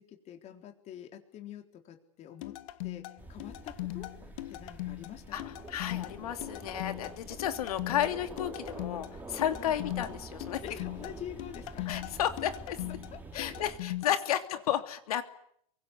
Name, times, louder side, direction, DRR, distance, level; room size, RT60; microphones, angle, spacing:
voice 1, 0.0-2.5 2.8-4.1 4.5-5.5 9.6-9.7 10.6-11.9 13.1-13.2 14.3-14.4, left 10 dB, 35° left, 4 dB, 3.9 m, -46 dB
sound 1, 2.4-14.1, left 17 dB, 65° left, 1.7 m, -40 dB
sound 2, 3.2-13.8, right 2 dB, 10° right, 3.5 m, -46 dB
voice 2, 5.7-10.6 11.9-12.8 13.3-15.2, left 10 dB, 80° left, 8 dB, 3.0 m, -32 dB
28.5 x 23.5 x 8.4 m, 0.69 s
supercardioid pair, 130°, 19 cm